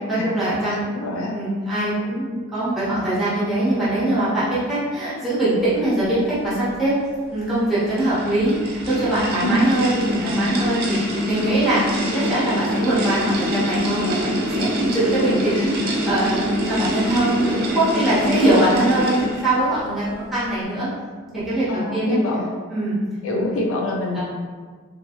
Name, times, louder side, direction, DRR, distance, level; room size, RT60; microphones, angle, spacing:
voice 1, 0.1-0.9 1.3-6.9 7.3-20.9 21.3-22.2 22.7-23.0 23.3-23.6 24.1-24.2, right 1 dB, ahead, -12 dB, 1.0 m, -22 dB
voice 2, 0.7-1.3 9.4-9.6 15.5-15.7 18.2-18.4 21.7-22.4 23.2-24.2, left 1 dB, 80° left, -1 dB, 0.4 m, -25 dB
sound 1, 7.4-19.6, equal, 45° right, 0.5 m, -25 dB
2.8 x 2.3 x 2.5 m, 1.5 s
head